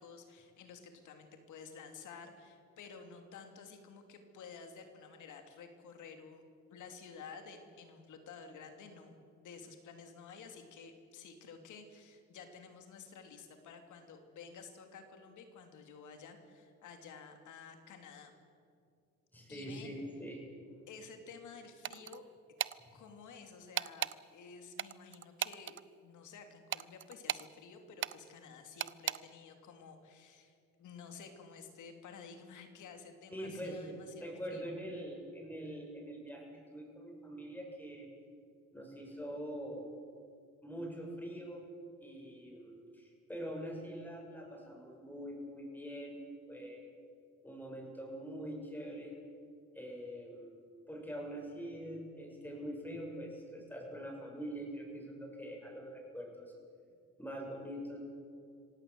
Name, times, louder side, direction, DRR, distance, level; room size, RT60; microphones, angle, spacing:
voice 1, 0.0-6.4 6.7-18.3 19.5-20.0 20.9-22.2 22.9-25.8 26.0-34.7, left 5 dB, 75° left, 6 dB, 3.1 m, -52 dB
voice 2, 19.3-20.5 22.8-23.0 33.3-38.1 38.7-39.9 40.6-41.7 42.0-46.2 46.5-46.8 47.4-49.1 49.7-50.6 50.9-56.5 57.2-58.0, equal, 5° left, 0 dB, 7.7 m, -44 dB
sound 1, 21.8-22.2 22.6-22.8 23.8-24.2 24.8-25.8 26.7-27.5 28.0-28.2 28.8-29.2, right 9 dB, 40° right, 0.6 m, -36 dB
26.0 x 17.0 x 7.8 m, 2.4 s
cardioid pair, 90°, 30 cm